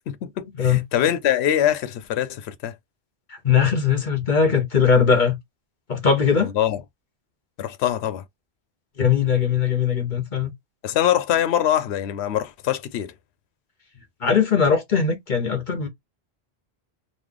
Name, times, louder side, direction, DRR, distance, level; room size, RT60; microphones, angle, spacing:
voice 1, 0.1-2.7 6.4-6.8 7.6-8.2 10.8-13.1, left 11 dB, 85° left, 0.8 m, -23 dB
voice 2, 3.3-5.4 5.9-6.5 9.0-10.5 14.2-15.9, left 6 dB, 50° left, 1.0 m, -20 dB
3.1 x 2.0 x 3.7 m
omnidirectional pair, 1.1 m